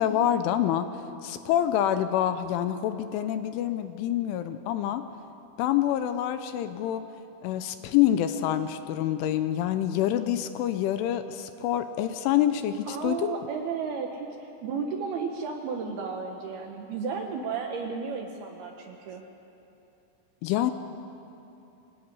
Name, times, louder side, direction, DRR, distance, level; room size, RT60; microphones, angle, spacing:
voice 1, 0.0-5.1 5.6-7.0 7.4-13.4 20.4-20.7, left 11 dB, 80° left, 10 dB, 3.1 m, -26 dB
voice 2, 12.9-19.2, right 5 dB, 70° right, 3 dB, 2.5 m, -33 dB
25.0 x 18.5 x 9.6 m, 2.9 s
omnidirectional pair, 5.9 m